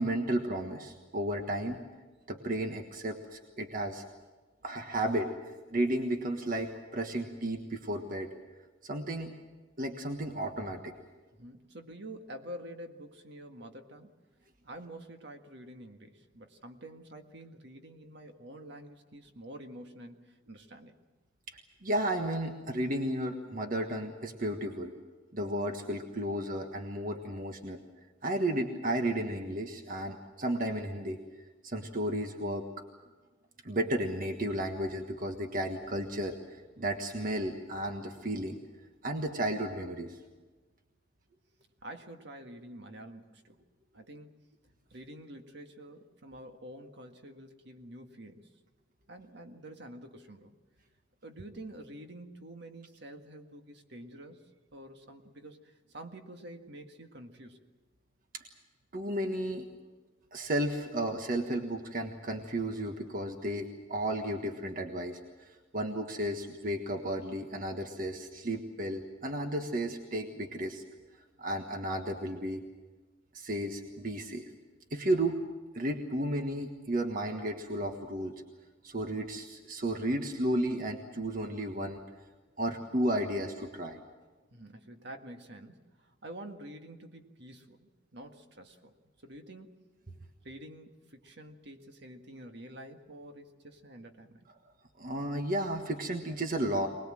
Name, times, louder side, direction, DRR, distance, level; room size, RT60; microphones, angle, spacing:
voice 1, 0.0-1.8 2.3-4.0 4.6-5.3 5.7-8.3 8.8-9.3 9.8-10.9 21.5-24.9 25.3-27.8 28.2-31.2 31.6-32.7 33.6-38.6 39.0-40.2 58.9-59.7 60.3-70.8 71.4-72.6 73.3-74.5 74.9-75.4 75.7-78.3 78.8-82.0 82.6-84.0 95.0-96.9, right 1 dB, 50° right, 5 dB, 1.5 m, -33 dB
voice 2, 11.3-14.1 14.6-20.9 41.8-43.6 43.9-44.4 44.9-48.5 49.1-50.6 51.2-54.5 54.7-57.6 84.5-88.9 89.2-89.7 90.4-94.4, right 1 dB, 65° right, 5 dB, 1.8 m, -48 dB
24.0 x 20.0 x 7.7 m, 1.3 s
head